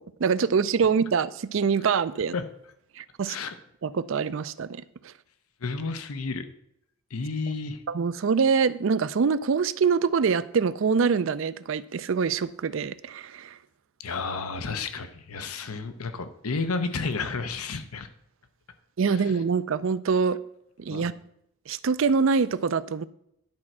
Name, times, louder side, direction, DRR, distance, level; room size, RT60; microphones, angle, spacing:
voice 1, 0.0-2.3 3.0-3.4 3.8-5.1 7.9-13.6 19.0-20.4 20.8-21.1 21.7-23.0, right 5 dB, 65° right, 16 dB, 0.4 m, -25 dB
voice 2, 5.6-6.5 7.1-7.8 14.0-18.1 19.1-19.3 20.9-21.1, left 4 dB, 90° left, 10 dB, 0.8 m, -31 dB
10.5 x 4.4 x 6.0 m, 0.74 s
head